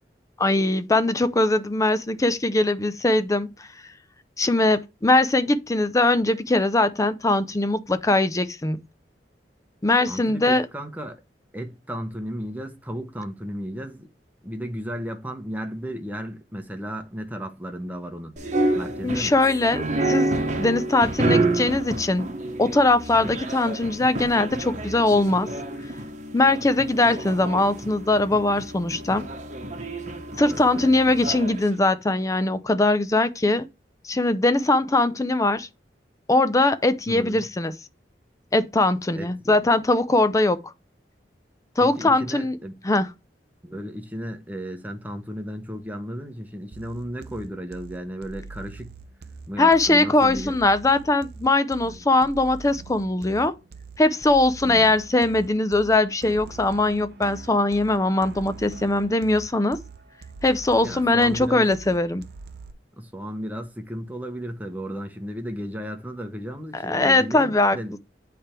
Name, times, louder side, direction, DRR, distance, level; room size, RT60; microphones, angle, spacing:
voice 1, 0.4-3.5 4.4-8.8 9.8-10.7 19.0-20.3 20.6-22.3 22.6-25.5 26.3-29.2 30.4-33.7 34.0-35.7 36.3-37.7 38.5-40.6 41.8-42.6 42.8-43.1 49.6-53.5 54.0-59.8 60.4-62.2 66.7-67.8, left 2 dB, 20° left, 0.5 m, -21 dB
voice 2, 10.1-11.2 11.5-14.1 14.4-18.3 18.7-19.3 30.5-30.9 37.1-37.4 39.2-39.6 41.8-42.8 43.6-48.9 49.5-50.5 51.8-52.3 54.6-54.9 60.8-61.7 63.0-68.0, equal, 10° right, 0.9 m, -34 dB
sound 1, 18.4-31.6, right 2 dB, 45° right, 1.0 m, -29 dB
sound 2, 46.7-62.7, right 4 dB, 65° right, 0.6 m, -43 dB
8.6 x 3.4 x 4.4 m
head